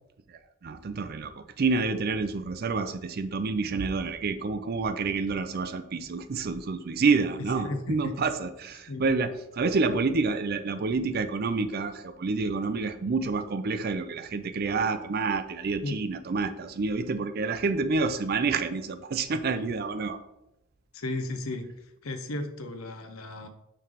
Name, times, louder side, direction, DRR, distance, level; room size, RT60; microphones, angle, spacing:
voice 1, 0.3-20.2, right 4 dB, 45° right, 11 dB, 0.4 m, -28 dB
voice 2, 7.4-8.0 8.9-9.1 15.8-16.0 20.9-23.5, left 2 dB, 85° left, 8 dB, 0.8 m, -35 dB
5.7 x 3.3 x 5.1 m, 0.89 s
head